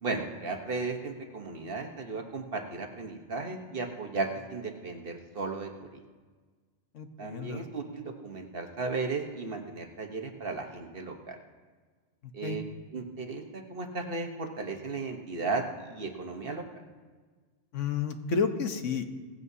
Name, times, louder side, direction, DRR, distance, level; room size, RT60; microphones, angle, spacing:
voice 1, 0.0-6.0 7.2-11.4 12.3-12.6 12.9-16.8, right 3 dB, 50° right, 4 dB, 1.3 m, -35 dB
voice 2, 6.9-7.6 12.2-12.6 17.7-19.0, left 5 dB, 80° left, 7 dB, 1.4 m, -31 dB
17.5 x 15.5 x 2.7 m, 1.5 s
omnidirectional pair, 1.2 m